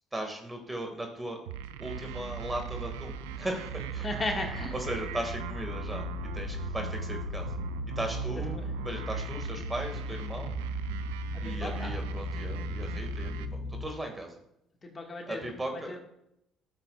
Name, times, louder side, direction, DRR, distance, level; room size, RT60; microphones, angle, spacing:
voice 1, 0.1-1.4 1.8-4.1 4.7-6.0 6.3-7.5 8.0-10.6 11.4-14.4 15.3-16.0, right 1 dB, 15° right, 3 dB, 2.2 m, -37 dB
sound 1, 1.5-13.5, right 11 dB, 90° right, 0.4 m, -39 dB
sound 2, 1.9-13.9, left 3 dB, 55° left, 1.5 m, -38 dB
voice 2, 4.0-4.7 8.5-8.7 11.3-11.9 14.8-15.4 15.9-16.0, left 2 dB, 30° left, 1 dB, 2.0 m, -35 dB
12.0 x 7.4 x 2.5 m, 0.78 s
supercardioid pair, 65°, 0 cm